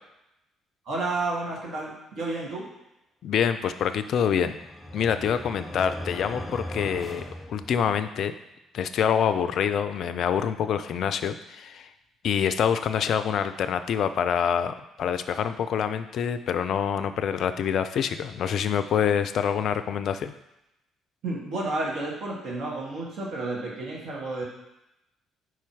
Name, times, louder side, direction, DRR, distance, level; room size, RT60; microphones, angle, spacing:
voice 1, 0.8-2.7 21.2-24.4, right 2 dB, 55° right, -3 dB, 1.5 m, -31 dB
voice 2, 3.2-4.6 4.9-8.3 8.7-11.9 12.2-20.3, left 8 dB, 55° left, 10 dB, 0.3 m, -26 dB
sound 1, 3.8-8.2, left 1 dB, 15° left, 0.9 m, -39 dB
4.7 x 4.3 x 4.6 m, 0.90 s
hypercardioid pair, 50°, 0 cm